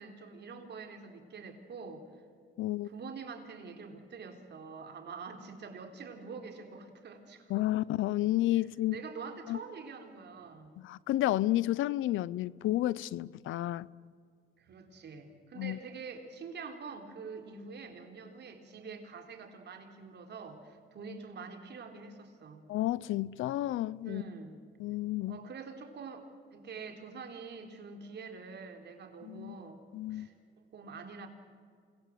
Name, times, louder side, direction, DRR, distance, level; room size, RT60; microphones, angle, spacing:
voice 1, 0.0-2.0 2.8-7.6 8.9-10.7 14.6-22.6 24.0-24.6 25.3-29.8 30.1-30.3 30.7-31.3, right 5 dB, 60° right, 3.8 m, -46 dB
voice 2, 2.6-2.9 7.5-9.0 9.5-9.6 10.8-13.9 15.6-15.8 22.7-24.2 24.8-25.4 29.2-29.6 29.9-30.3, left 15 dB, 85° left, 0.7 m, -31 dB
28.0 x 21.5 x 7.8 m
cardioid pair, 90°, 20 cm